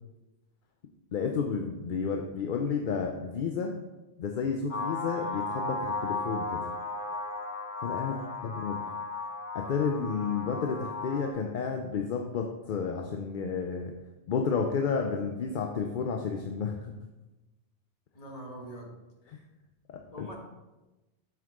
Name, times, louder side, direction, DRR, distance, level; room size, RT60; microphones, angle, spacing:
voice 1, 1.1-3.8 4.2-6.6 7.8-8.8 9.5-13.9 14.3-16.9 19.9-20.3, left 5 dB, 55° left, 3 dB, 0.6 m, -31 dB
sound 1, 4.7-11.3, left 3 dB, 85° left, 1.6 m, -35 dB
voice 2, 8.0-8.3 18.1-19.0 20.1-20.4, right 1 dB, 35° left, 0 dB, 1.4 m, -43 dB
7.5 x 5.9 x 3.7 m, 1.1 s
omnidirectional pair, 1.2 m